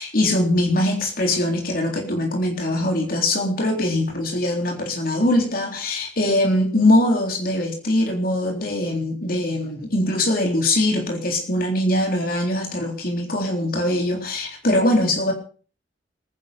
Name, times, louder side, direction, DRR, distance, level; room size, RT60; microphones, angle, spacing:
voice 1, 0.0-15.3, left 1 dB, 55° left, 2 dB, 3.7 m, -22 dB
21.0 x 11.0 x 6.0 m, 0.41 s
head